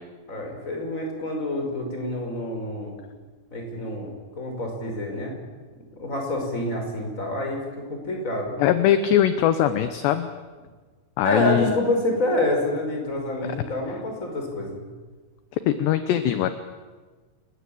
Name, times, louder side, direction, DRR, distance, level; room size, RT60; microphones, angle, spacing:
voice 1, 0.3-3.0 3.5-5.4 6.0-8.6 11.2-14.8, left 1 dB, 15° left, 2 dB, 5.4 m, -27 dB
voice 2, 8.6-10.3 11.2-11.7 15.7-16.5, left 10 dB, 75° left, 10 dB, 2.8 m, -21 dB
29.5 x 20.0 x 8.8 m, 1.4 s
omnidirectional pair, 5.8 m